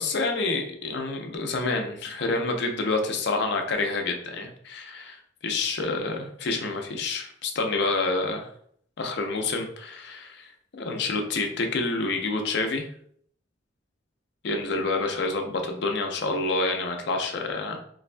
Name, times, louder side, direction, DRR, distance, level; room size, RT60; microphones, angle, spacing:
voice 1, 0.0-8.5 9.0-12.9 14.4-17.8, left 3 dB, 60° left, 4 dB, 0.5 m, -28 dB
3.9 x 2.2 x 2.5 m, 0.65 s
head